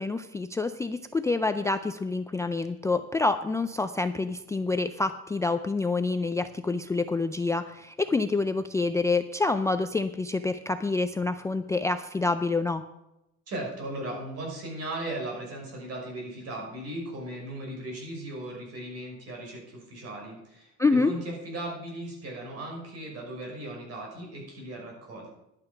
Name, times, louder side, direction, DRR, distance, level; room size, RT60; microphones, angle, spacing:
voice 1, 0.0-12.8 20.8-21.1, left 3 dB, 10° left, 8 dB, 0.3 m, -27 dB
voice 2, 13.5-25.4, right 1 dB, 55° right, 0 dB, 5.8 m, -37 dB
11.0 x 9.7 x 6.0 m, 0.90 s
cardioid pair, 145°, 30 cm